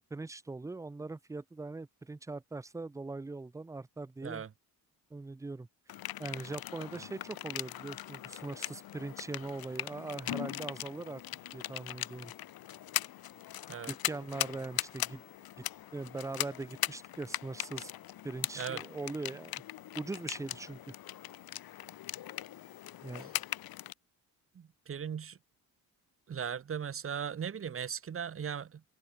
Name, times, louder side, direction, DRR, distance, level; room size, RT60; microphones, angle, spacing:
voice 1, 0.1-4.4 5.1-5.7 6.2-11.2 11.5-12.3 13.9-15.2 15.6-15.7 15.9-17.9 18.2-19.6 20.0-20.9 23.0-23.3, right 3 dB, 10° right, 0.5 m, -41 dB
sound 1, 5.9-23.9, left 13 dB, 70° left, 1.3 m, -40 dB
voice 2, 24.5-25.4 26.3-28.8, right 7 dB, 35° right, 1.3 m, -38 dB
cardioid pair, 140°, 37 cm